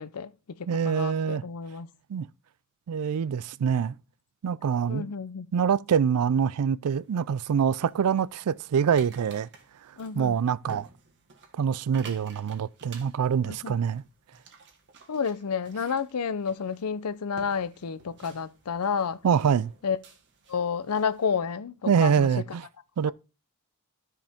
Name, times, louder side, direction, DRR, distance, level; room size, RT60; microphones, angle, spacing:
voice 1, 0.0-1.9 4.9-5.5 10.0-10.4 13.5-13.8 15.1-19.2 19.8-20.0 20.5-22.3, left 6 dB, 90° left, 0.6 m, -30 dB
voice 2, 0.7-1.4 2.1-2.3 2.9-3.9 4.4-5.1 5.5-9.5 10.1-10.9 11.6-14.0 19.2-19.7 21.9-22.6 23.0-23.1, right 7 dB, 85° right, 0.4 m, -25 dB
sound 1, 6.9-21.4, right 4 dB, 55° right, 1.5 m, -53 dB
13.0 x 4.9 x 3.5 m
head